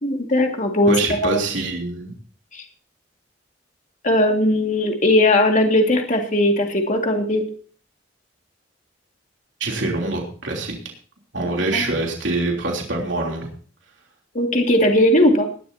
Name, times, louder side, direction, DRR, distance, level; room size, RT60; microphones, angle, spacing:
voice 1, 0.0-1.4 2.5-2.6 4.0-7.4 11.7-11.9 14.3-15.5, left 1 dB, 40° left, 2 dB, 2.2 m, -18 dB
voice 2, 0.9-2.1 9.6-10.7 11.3-13.5, right 2 dB, 75° right, 0 dB, 3.3 m, -24 dB
20.0 x 12.0 x 2.8 m, 0.41 s
head